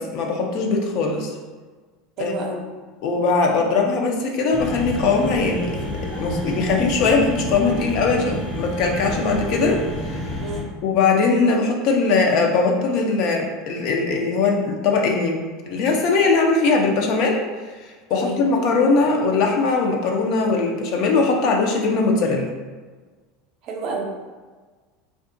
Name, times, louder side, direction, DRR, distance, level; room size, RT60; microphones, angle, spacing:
voice 1, 0.0-1.3 2.2-2.3 3.0-5.8 6.2-10.4 10.8-17.4 17.8-22.5, left 4 dB, 60° left, 2 dB, 0.4 m, -20 dB
voice 2, 2.2-2.7 10.4-10.7 18.1-18.5 23.6-24.0, right 2 dB, 55° right, 1 dB, 0.5 m, -29 dB
sound 1, 4.5-10.6, left 1 dB, 85° left, 1.1 m, -29 dB
2.6 x 2.3 x 2.5 m, 1.4 s
supercardioid pair, 105°, 0 cm